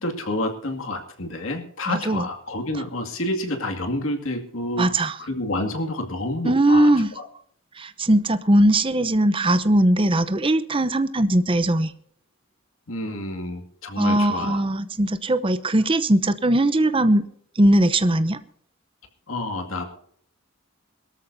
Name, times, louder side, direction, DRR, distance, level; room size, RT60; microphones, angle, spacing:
voice 1, 0.0-6.9 7.2-7.3 12.9-14.6 19.3-19.8, left 1 dB, 80° left, 2.2 m, -29 dB
voice 2, 1.9-2.2 4.8-5.2 6.4-7.1 7.8-11.9 14.0-17.3 17.6-18.4, right 1 dB, 25° right, 0.8 m, -20 dB
23.0 x 13.5 x 2.7 m
head